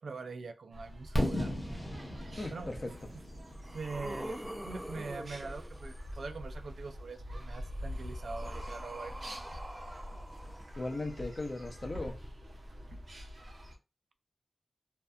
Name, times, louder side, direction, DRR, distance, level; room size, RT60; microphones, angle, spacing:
voice 1, 0.0-1.5 2.5-2.7 3.7-4.4 4.6-9.6, right 4 dB, 80° right, 0.3 m, -43 dB
sound 1, 0.7-13.8, equal, 60° right, 0.7 m, -45 dB
Fireworks, 1.2-5.0, equal, 15° left, 0.8 m, -36 dB
voice 2, 2.4-2.9 10.8-12.2, left 2 dB, 40° left, 0.5 m, -37 dB
sound 2, 2.7-2.8 3.3-6.1 7.3-11.2 12.2-12.3, right 1 dB, 10° right, 0.4 m, -45 dB
2.7 x 2.2 x 2.3 m
wide cardioid pair, 80°, 0 cm